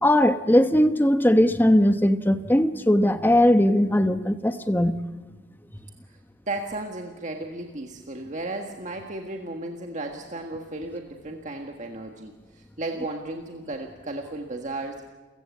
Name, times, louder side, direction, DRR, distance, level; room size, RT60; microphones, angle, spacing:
voice 1, 0.0-5.0, left 1 dB, 10° left, 9 dB, 1.0 m, -19 dB
voice 2, 6.5-15.0, right 2 dB, 40° right, 2 dB, 1.6 m, -34 dB
29.0 x 16.0 x 8.4 m, 1.3 s
head